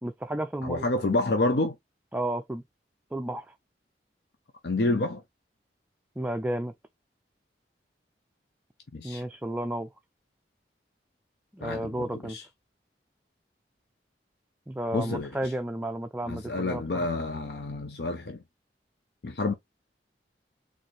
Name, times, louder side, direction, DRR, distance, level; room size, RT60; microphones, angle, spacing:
voice 1, 0.0-0.9 2.1-2.6 3.1-3.5 6.2-6.7 9.0-9.9 11.5-12.4 14.7-17.1, right 1 dB, 10° right, 0.4 m, -32 dB
voice 2, 0.6-1.7 4.6-5.2 8.9-9.2 11.6-12.4 14.9-15.5 16.3-18.4 19.2-19.5, left 2 dB, 65° left, 0.7 m, -29 dB
4.2 x 3.4 x 3.1 m
head